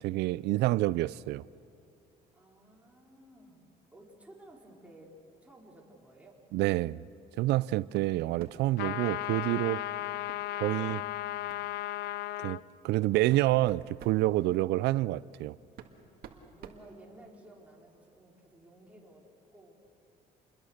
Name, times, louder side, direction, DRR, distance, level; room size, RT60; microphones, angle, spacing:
voice 1, 0.0-1.4 6.5-7.0 7.4-9.8 10.6-11.0 12.4-15.6, right 17 dB, 85° right, 0.5 m, -28 dB
voice 2, 2.3-3.6 3.9-6.4 9.8-10.0 14.3-14.6 16.3-19.7, right 1 dB, 10° right, 4.7 m, -55 dB
sound 1, 7.9-8.7 10.3-10.5 10.9-11.0 11.5-11.7 12.5-12.6 13.1-14.2 15.3-15.4 15.8-17.5, right 9 dB, 65° right, 1.8 m, -50 dB
sound 2, 8.8-12.6, left 15 dB, 80° left, 0.6 m, -35 dB
28.0 x 21.5 x 6.6 m
cardioid pair, 110°, 17 cm